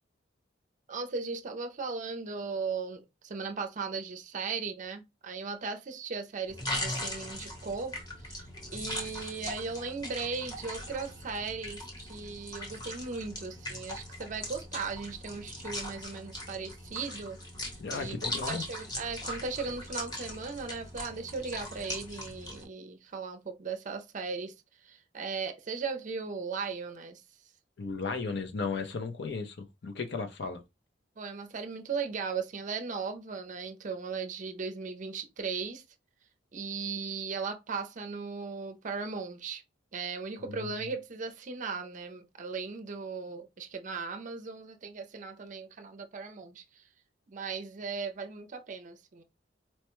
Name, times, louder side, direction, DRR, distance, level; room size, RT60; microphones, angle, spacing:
voice 1, 0.9-17.4 17.7-18.2 18.5-27.2 31.2-35.8 36.5-39.6 39.9-46.8 47.3-49.2, right 4 dB, 40° right, 0.5 m, -37 dB
sound 1, 6.5-22.6, left 1 dB, 20° left, 0.9 m, -40 dB
voice 2, 17.8-18.6 27.8-30.6 40.5-40.7, left 4 dB, 65° left, 0.6 m, -35 dB
4.3 x 2.1 x 3.0 m
head